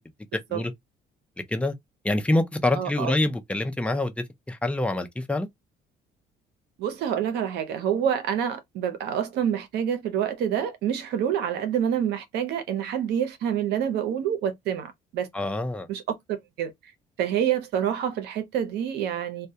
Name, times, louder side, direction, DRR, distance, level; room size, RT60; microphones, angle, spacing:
voice 1, 0.3-0.7 1.5-1.7 2.0-5.5 15.3-15.9, left 2 dB, 5° left, 0.5 m, -26 dB
voice 2, 2.7-3.1 6.8-15.3 15.9-16.0 16.3-16.9 17.2-19.5, right 9 dB, 80° right, 0.7 m, -27 dB
2.2 x 2.1 x 2.7 m
cardioid pair, 110°, 17 cm